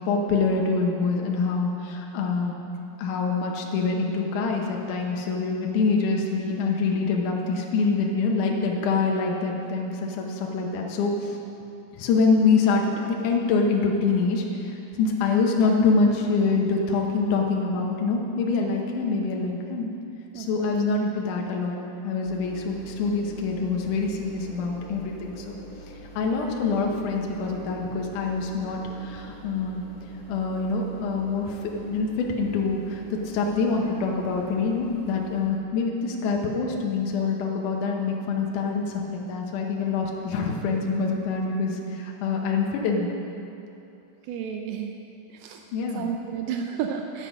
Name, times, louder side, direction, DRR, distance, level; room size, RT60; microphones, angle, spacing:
voice 1, 0.0-2.5 3.0-11.4 11.9-19.9 20.4-21.8 22.0-25.5 26.2-29.8 30.3-43.1 45.7-46.1, left 4 dB, 85° left, 0 dB, 1.7 m, -25 dB
voice 2, 20.3-20.8 44.3-44.9 45.3-45.6 45.9-47.3, right 7 dB, 85° right, 3 dB, 2.2 m, -32 dB
sound 1, 22.2-35.4, left 1 dB, 60° left, 1.6 m, -45 dB
12.0 x 7.5 x 5.2 m, 2.8 s
omnidirectional pair, 5.0 m